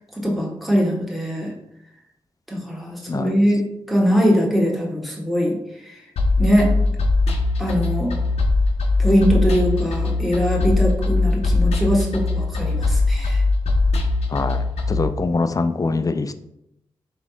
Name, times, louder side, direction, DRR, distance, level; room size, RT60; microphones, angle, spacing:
voice 1, 0.2-1.5 2.5-5.6 6.4-6.7 7.6-8.1 9.0-13.4, equal, ahead, -2 dB, 1.2 m, -21 dB
sound 1, 6.2-15.0, left 3 dB, 85° left, 0.7 m, -20 dB
voice 2, 14.3-16.3, left 3 dB, 35° left, 10 dB, 0.4 m, -24 dB
3.9 x 3.3 x 3.7 m, 0.83 s
supercardioid pair, 40°, 10 cm